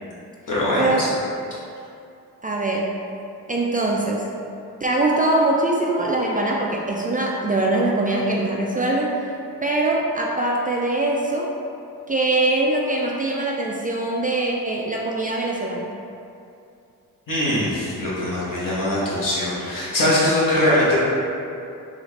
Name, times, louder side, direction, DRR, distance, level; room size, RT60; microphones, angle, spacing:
voice 1, 0.5-1.1 17.3-21.0, left 1 dB, 55° left, -7 dB, 1.3 m, -21 dB
voice 2, 2.4-3.0 3.5-4.3 4.8-9.2 9.6-11.5 12.1-15.9, right 2 dB, 25° right, -2 dB, 0.4 m, -22 dB
3.7 x 2.4 x 3.3 m, 2.6 s
supercardioid pair, 50°, 38 cm